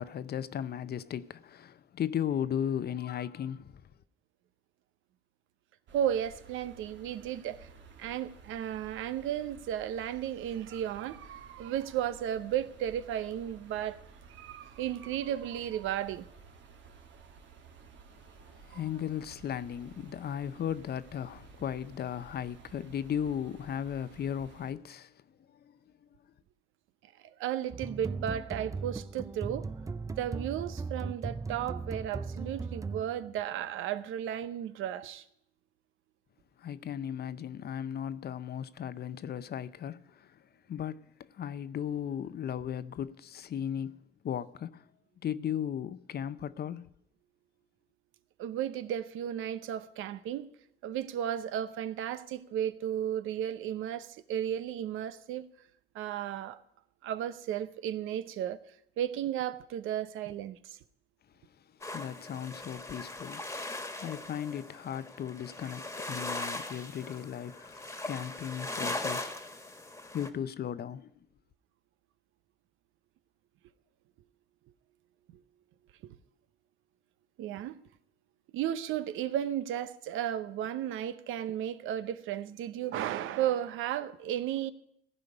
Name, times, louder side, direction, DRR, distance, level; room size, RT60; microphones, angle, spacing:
voice 1, 0.0-3.7 18.7-25.1 25.6-25.7 36.6-40.4 40.7-41.1 41.3-44.9 45.2-46.9 61.9-69.3 70.1-71.1, left 9 dB, 55° left, 0.6 m, -36 dB
sound 1, 5.9-24.7, right 5 dB, 70° right, 1.8 m, -54 dB
voice 2, 5.9-7.7 8.0-14.0 14.3-16.3 27.2-29.7 30.2-35.2 48.4-50.5 50.8-55.5 55.9-56.6 57.0-58.6 59.0-60.8 65.6-65.7 76.0-76.2 77.4-77.8 78.5-84.7, right 10 dB, 90° right, 0.7 m, -34 dB
sound 2, 27.7-33.4, right 4 dB, 15° right, 0.5 m, -38 dB
sound 3, 61.8-70.3, left 2 dB, 15° left, 1.5 m, -39 dB
15.5 x 5.2 x 9.6 m
cardioid pair, 90°, 20 cm